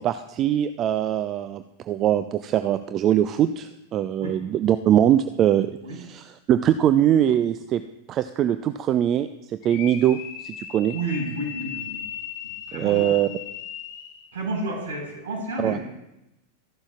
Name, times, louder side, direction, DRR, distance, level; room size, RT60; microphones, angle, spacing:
voice 1, 0.0-7.8 8.1-10.9 12.7-13.3 15.6-15.8, right 11 dB, 30° right, 11 dB, 0.4 m, -22 dB
sound 1, 9.6-14.3, left 10 dB, 45° left, 1.4 m, -37 dB
voice 2, 10.9-12.0 12.7-13.1 14.3-15.9, right 2 dB, 60° right, -1 dB, 4.7 m, -30 dB
14.0 x 11.0 x 2.4 m, 0.91 s
figure-of-eight pair, 90°, 0 cm